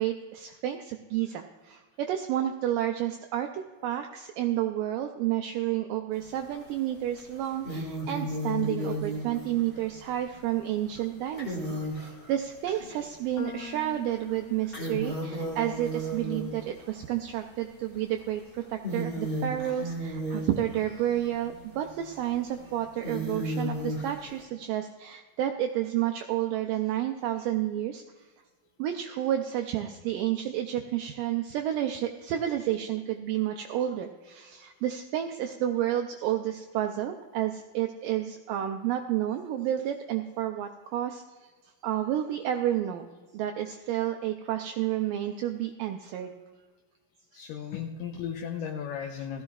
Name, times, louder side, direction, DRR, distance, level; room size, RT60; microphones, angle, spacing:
voice 1, 0.0-28.0 28.8-41.2 41.8-43.1 43.3-46.3, right 12 dB, 90° right, 5 dB, 1.9 m, -30 dB
sound 1, 6.2-6.7 7.2-13.0 13.6-13.7 14.1-17.1 17.9-18.2 18.6-24.4, equal, 35° left, 0.9 m, -35 dB
sound 2, 13.4-19.7, left 5 dB, 60° left, 3.0 m, -48 dB
voice 2, 47.3-49.4, left 8 dB, 80° left, 2 dB, 2.0 m, -35 dB
16.5 x 13.5 x 2.4 m, 1.4 s
omnidirectional pair, 4.6 m